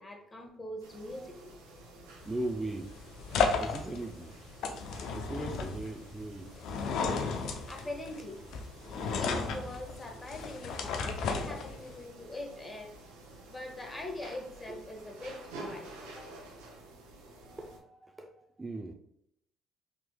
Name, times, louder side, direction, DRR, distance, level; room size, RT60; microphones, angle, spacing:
voice 1, 0.0-1.4 7.7-8.4 9.2-12.9 13.5-16.3, left 1 dB, 20° left, 2 dB, 1.0 m, -42 dB
sound 1, 0.8-17.8, right 2 dB, 90° right, 0.6 m, -51 dB
sound 2, 2.2-12.1, left 5 dB, 70° left, 0.5 m, -34 dB
voice 2, 2.2-2.9 3.5-4.5 5.1-6.5 13.1-13.4 17.4-18.9, right 2 dB, 20° right, 4 dB, 0.4 m, -39 dB
3.6 x 2.9 x 2.2 m, 0.75 s
supercardioid pair, 65°, 0 cm